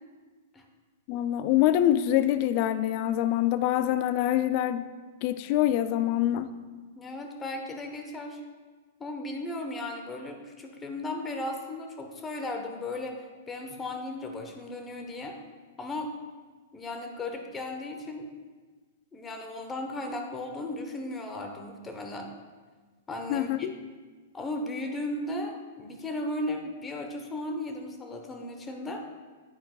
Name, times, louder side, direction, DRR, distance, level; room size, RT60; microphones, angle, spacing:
voice 1, 1.1-4.9 5.2-6.5 23.3-23.7, left 12 dB, 45° left, 12 dB, 0.4 m, -25 dB
voice 2, 6.9-8.4 9.0-15.4 15.8-16.1 16.7-18.3 19.1-22.3 23.1-23.7 24.3-29.0, left 1 dB, 20° left, 4 dB, 1.0 m, -36 dB
9.7 x 9.0 x 2.4 m, 1.4 s
figure-of-eight pair, 105°, 0 cm